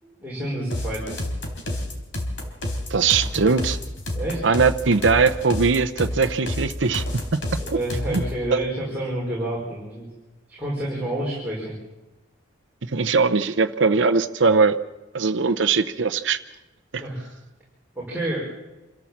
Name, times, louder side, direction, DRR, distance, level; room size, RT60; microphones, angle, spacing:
voice 1, 0.0-1.2 4.1-4.4 7.6-10.1 10.5-11.7 17.0-17.3 18.0-18.4, right 1 dB, 10° right, -6 dB, 5.3 m, -29 dB
sound 1, 0.7-8.4, left 1 dB, 85° left, 3.9 m, -29 dB
voice 2, 2.9-3.8 4.4-7.2 8.1-8.2 8.5-8.6 12.9-14.8 15.1-16.4 16.9-17.0, right 4 dB, 85° right, 8 dB, 0.8 m, -20 dB
27.0 x 13.5 x 7.3 m, 1.1 s
head